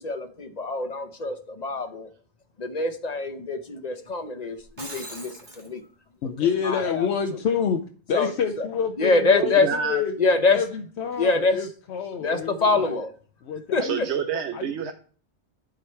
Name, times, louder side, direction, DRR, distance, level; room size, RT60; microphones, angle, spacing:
voice 1, 0.0-2.1 2.6-5.8 6.7-6.8 8.1-8.3 8.6-8.7 9.0-9.7 10.2-10.6 11.2-11.6 12.2-13.1 13.7-14.0, left 3 dB, 40° left, 9 dB, 0.9 m, -24 dB
Shatter, 4.6-5.7, right 2 dB, 45° right, 1.8 m, -40 dB
voice 2, 6.2-10.1 10.5-13.0 13.4-14.0 14.5-14.9, left 7 dB, 75° left, 6 dB, 0.9 m, -28 dB
voice 3, 9.4-10.0 13.8-14.9, right 7 dB, 80° right, 7 dB, 1.0 m, -28 dB
11.0 x 5.0 x 4.5 m, 0.43 s
omnidirectional pair, 1.1 m